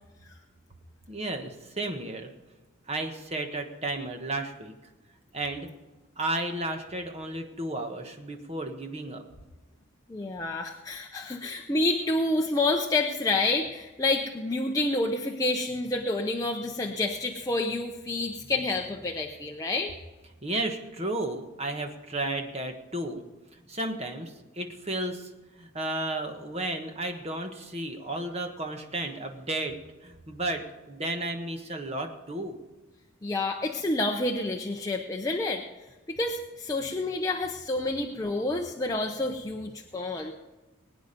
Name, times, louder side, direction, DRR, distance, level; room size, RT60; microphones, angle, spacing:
voice 1, 1.1-2.3 2.9-4.7 5.3-5.7 6.2-9.2 20.4-23.2 23.7-25.3 25.6-29.7 30.0-32.6, right 2 dB, 30° right, 5 dB, 1.3 m, -33 dB
voice 2, 10.1-19.9 33.2-35.6 36.1-40.3, left 2 dB, 15° left, 1 dB, 0.7 m, -28 dB
21.0 x 9.3 x 5.2 m, 1.1 s
head